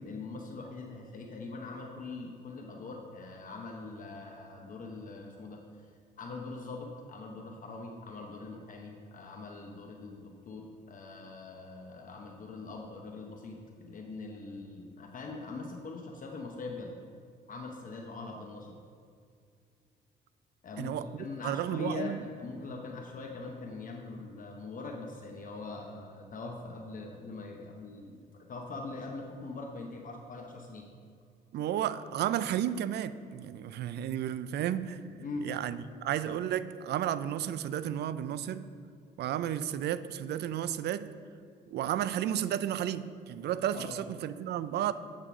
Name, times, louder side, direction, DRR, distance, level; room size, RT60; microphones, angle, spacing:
voice 1, 0.0-16.9 17.5-18.8 20.6-28.2 28.5-30.9 35.2-35.5 43.7-44.0, left 3 dB, 45° left, 0.8 m, -42 dB
voice 2, 20.8-22.2 22.7-22.8 31.5-35.0 35.4-38.7 39.2-41.1 41.7-44.9, right 10 dB, 65° right, 0.4 m, -33 dB
8.3 x 3.7 x 5.9 m
cardioid pair, 90°, 19 cm